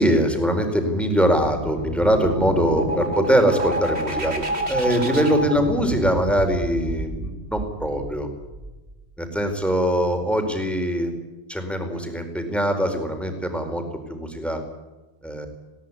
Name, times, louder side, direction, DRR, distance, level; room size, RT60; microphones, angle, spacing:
voice 1, 0.0-4.4 4.7-8.3 9.2-11.1 11.5-13.8 14.1-14.6 15.2-15.5, equal, ahead, 4 dB, 4.4 m, -22 dB
sound 1, 1.4-8.9, right 1 dB, 75° right, 3.5 m, -29 dB
20.0 x 18.0 x 9.7 m, 1.1 s
omnidirectional pair, 1.1 m